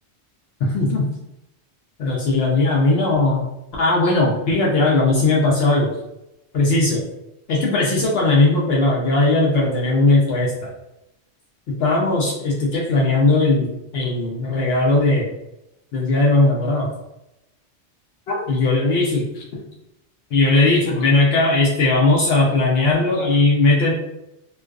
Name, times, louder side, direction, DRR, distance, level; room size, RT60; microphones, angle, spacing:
voice 1, 0.6-1.1 2.0-3.4 3.8-5.9 6.5-7.0 7.5-10.7 11.8-15.3 15.9-16.9 18.3-19.6 20.3-23.9, left 2 dB, 70° left, -4 dB, 0.8 m, -18 dB
2.4 x 2.3 x 2.3 m, 0.87 s
omnidirectional pair, 1.1 m